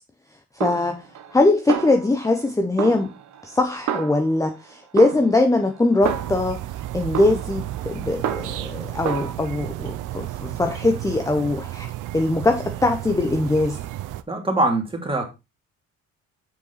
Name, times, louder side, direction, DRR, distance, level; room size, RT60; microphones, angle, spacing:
voice 1, 0.6-1.1 1.3-3.1 3.4-6.6 6.9-13.8, left 2 dB, 10° left, 0.8 m, -21 dB
Snare drum, 0.6-1.4 1.7-2.5 2.8-4.6 5.0-6.6 7.1-8.7 9.1-9.3, right 9 dB, 65° right, 1.1 m, -30 dB
sound 1, 6.0-14.2, right 14 dB, 85° right, 0.7 m, -33 dB
voice 2, 14.3-15.2, right 2 dB, 20° right, 2.6 m, -22 dB
6.8 x 5.9 x 4.0 m
cardioid pair, 90°, 30 cm